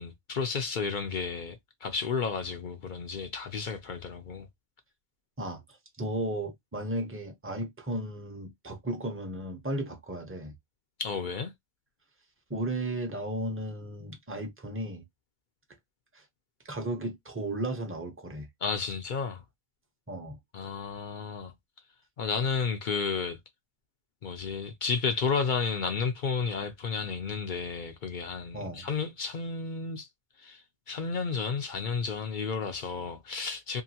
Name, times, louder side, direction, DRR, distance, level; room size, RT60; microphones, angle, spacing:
voice 1, 0.0-4.5 11.0-11.5 18.6-19.4 20.5-21.5 22.2-23.4 24.2-30.1 30.4-33.8, left 5 dB, 65° left, 0.5 m, -32 dB
voice 2, 6.0-10.5 12.5-15.0 16.1-16.2 16.6-18.5 20.1-20.4 28.5-28.9, right 1 dB, 15° right, 0.5 m, -34 dB
2.8 x 2.5 x 2.7 m
omnidirectional pair, 1.4 m